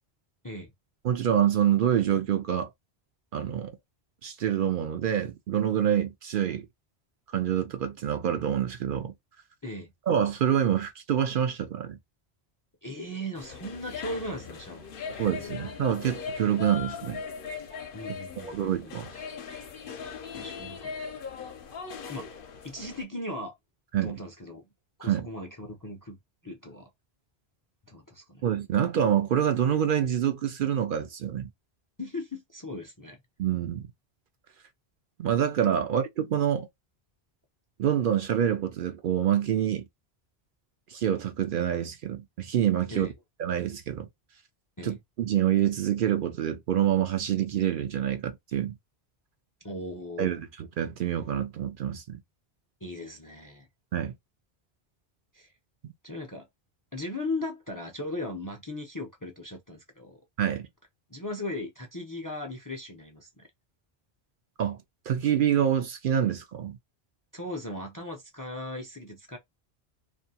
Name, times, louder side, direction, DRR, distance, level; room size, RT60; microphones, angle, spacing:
voice 1, 1.0-2.7 3.3-3.7 4.2-6.7 7.3-9.1 10.1-12.0 15.2-17.2 18.4-19.1 23.9-24.2 25.0-25.3 28.4-31.5 33.4-33.9 35.2-36.7 37.8-39.8 40.9-43.1 43.4-44.1 44.8-48.7 50.2-52.2 53.9-54.1 55.8-55.9 60.4-60.7 64.6-64.8 65.1-66.8, right 9 dB, 60° right, 0.6 m, -26 dB
voice 2, 12.8-15.6 17.9-18.9 20.3-20.9 22.1-22.3 22.6-23.6 24.0-24.7 25.0-26.2 26.4-26.9 27.9-28.5 32.0-33.2 42.9-43.1 44.8-45.0 49.6-50.4 52.8-53.7 55.3-55.5 56.0-56.5 56.9-60.2 61.1-63.5 67.3-69.4, left 1 dB, 25° left, 0.4 m, -38 dB
sound 1, 13.3-23.0, left 6 dB, 60° left, 0.8 m, -39 dB
2.6 x 2.5 x 2.7 m
omnidirectional pair, 1.1 m